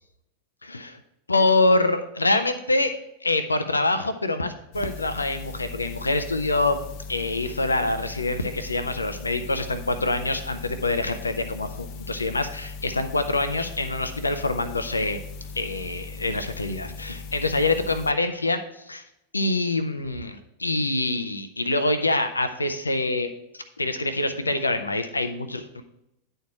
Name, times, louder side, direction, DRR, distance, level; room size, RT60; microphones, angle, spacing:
voice 1, 0.6-1.0 1.3-2.9 3.2-6.8 7.1-15.2 15.5-19.0 19.3-25.8, left 2 dB, 80° left, 9 dB, 0.6 m, -25 dB
sound 1, 4.7-18.1, left 4 dB, 45° left, 0.6 m, -39 dB
10.5 x 4.5 x 4.7 m, 0.84 s
figure-of-eight pair, 90°, 0 cm